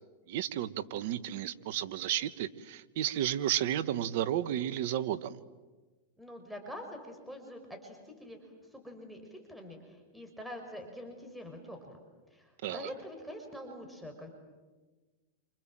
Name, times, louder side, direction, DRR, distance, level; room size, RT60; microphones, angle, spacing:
voice 1, 0.3-5.4 12.6-12.9, right 11 dB, 65° right, 13 dB, 1.4 m, -32 dB
voice 2, 6.2-12.0 12.3-14.3, equal, 5° right, 4 dB, 5.8 m, -45 dB
28.5 x 27.5 x 7.7 m, 1.3 s
hypercardioid pair, 110°, 0 cm